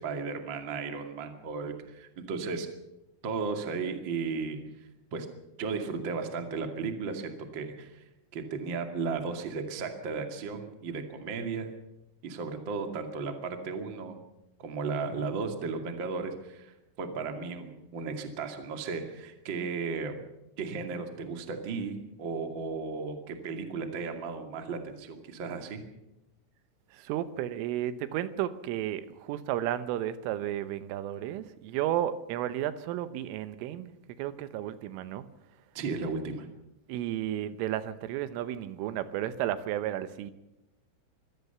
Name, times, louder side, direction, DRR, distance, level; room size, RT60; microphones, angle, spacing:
voice 1, 0.0-2.7 3.2-4.6 5.1-5.3 5.6-8.0 8.3-11.7 12.2-14.2 14.6-20.2 20.6-25.8 35.7-36.5, right 4 dB, 40° right, 1.9 m, -35 dB
voice 2, 26.9-35.3 36.9-40.3, right 12 dB, 80° right, 3.5 m, -33 dB
25.0 x 16.5 x 6.9 m
omnidirectional pair, 5.8 m